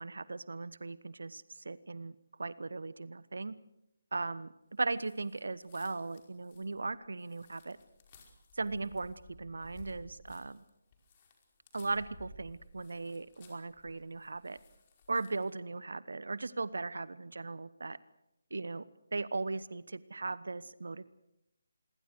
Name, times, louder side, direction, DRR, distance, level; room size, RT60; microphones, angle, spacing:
voice 1, 0.0-2.1 2.4-3.5 4.1-7.8 8.6-10.6 11.7-14.6 15.1-18.0 18.5-18.8 19.1-21.1, right 3 dB, 60° right, 18 dB, 1.0 m, -38 dB
sound 1, 4.9-15.6, left 2 dB, 30° left, 5.0 m, -58 dB
27.0 x 22.5 x 6.5 m, 0.84 s
figure-of-eight pair, 150°, 0 cm